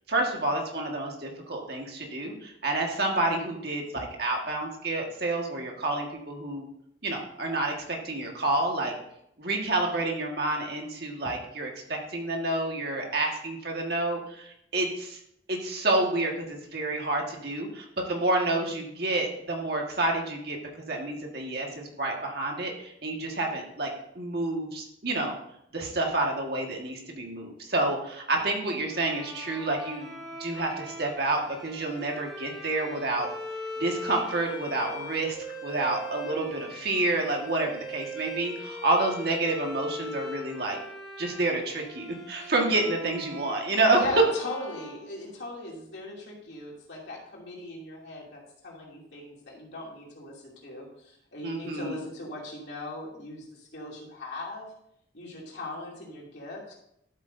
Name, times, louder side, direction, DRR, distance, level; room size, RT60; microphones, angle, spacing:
voice 1, 0.1-6.7 7.0-8.9 9.4-15.2 15.5-20.6 20.9-23.9 24.2-25.3 25.7-30.1 30.4-33.3 33.8-40.8 41.2-44.0 51.4-52.0, right 2 dB, 55° right, 1 dB, 1.6 m, -29 dB
sound 1, 28.9-45.7, left 1 dB, ahead, 2.8 m, -41 dB
voice 2, 43.9-54.7 55.1-56.7, left 1 dB, 65° left, -3 dB, 2.7 m, -39 dB
12.0 x 8.1 x 2.7 m, 0.75 s
head